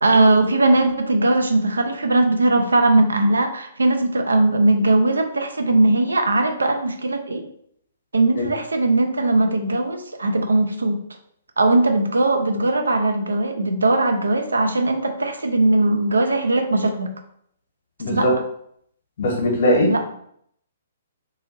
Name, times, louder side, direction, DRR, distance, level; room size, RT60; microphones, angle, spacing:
voice 1, 0.0-7.4 8.1-11.0 11.6-17.1 18.1-18.3 19.9-20.0, right 2 dB, 70° right, 6 dB, 0.4 m, -19 dB
voice 2, 18.0-18.3 19.2-19.9, left 1 dB, 50° left, 0 dB, 0.9 m, -19 dB
2.7 x 2.6 x 2.5 m, 0.69 s
figure-of-eight pair, 120°, 0 cm